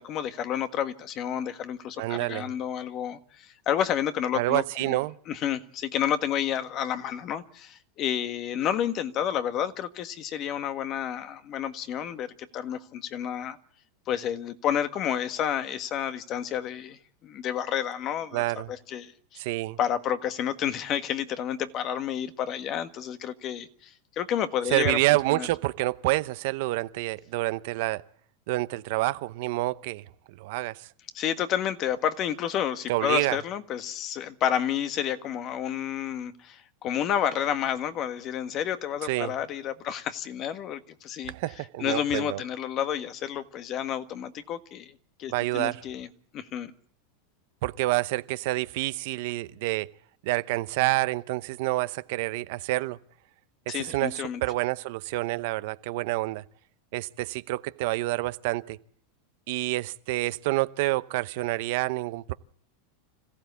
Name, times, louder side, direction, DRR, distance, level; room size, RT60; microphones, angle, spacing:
voice 1, 0.0-5.0 5.3-12.3 12.5-13.6 14.1-19.1 19.8-25.0 25.3-25.5 31.1-41.3 41.8-46.1 46.3-46.7 53.7-54.4, left 9 dB, 40° left, 1.6 m, -30 dB
voice 2, 2.0-2.5 4.3-5.2 18.3-18.7 19.4-19.8 24.7-28.0 28.5-30.9 32.9-33.4 39.0-39.3 41.3-42.4 45.3-45.8 47.6-49.9 50.2-53.0 53.7-56.4 56.9-58.8 59.5-62.3, right 20 dB, 65° right, 0.8 m, -28 dB
26.0 x 15.0 x 8.3 m
supercardioid pair, 120°, 0 cm